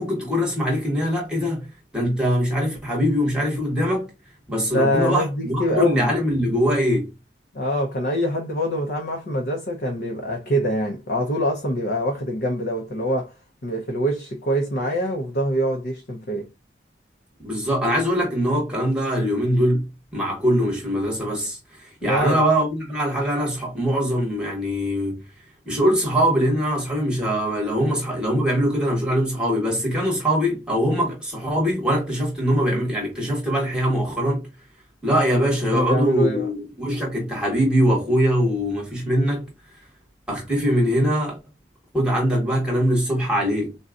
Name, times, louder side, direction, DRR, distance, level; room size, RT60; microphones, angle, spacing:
voice 1, 0.0-1.7 1.9-4.1 4.5-7.1 17.4-19.9 20.1-25.2 25.6-34.5 35.0-39.5 40.3-41.4 41.9-43.8, equal, 5° right, 1.1 m, -22 dB
voice 2, 4.7-6.1 7.5-13.3 13.6-16.5 22.0-22.4 35.7-36.5, equal, 55° left, 0.7 m, -24 dB
4.0 x 2.3 x 2.4 m
head